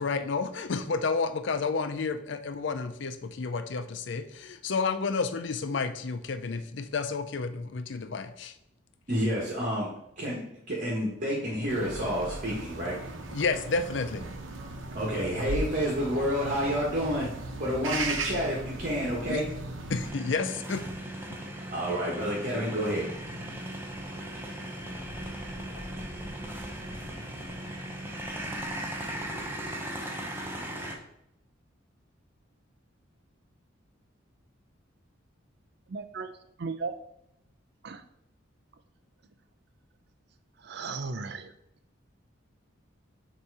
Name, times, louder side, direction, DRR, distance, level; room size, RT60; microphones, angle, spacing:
voice 1, 0.0-8.5 13.3-14.3 19.3-19.4 19.9-20.8, left 4 dB, 65° left, 10 dB, 0.5 m, -30 dB
voice 2, 9.1-10.4 10.7-12.9 14.9-17.3 17.6-19.4 21.7-23.1, equal, 40° right, -5 dB, 1.3 m, -29 dB
sound 1, 11.7-20.1, right 2 dB, 75° right, 0.9 m, -37 dB
sound 2, 20.0-31.0, right 1 dB, 10° right, 0.8 m, -37 dB
voice 3, 35.9-36.3 36.6-36.9 37.8-38.0 40.6-41.5, right 4 dB, 55° right, 10 dB, 0.5 m, -35 dB
7.0 x 3.0 x 4.7 m, 0.78 s
head